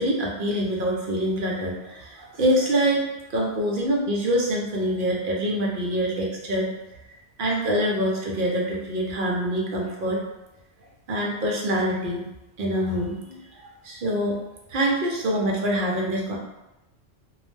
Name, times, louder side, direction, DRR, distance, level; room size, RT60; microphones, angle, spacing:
voice 1, 0.0-6.7 7.4-10.2 11.1-12.2 12.6-14.4 14.7-16.4, equal, 55° right, -2 dB, 0.6 m, -25 dB
2.3 x 2.0 x 3.1 m, 0.96 s
omnidirectional pair, 1.2 m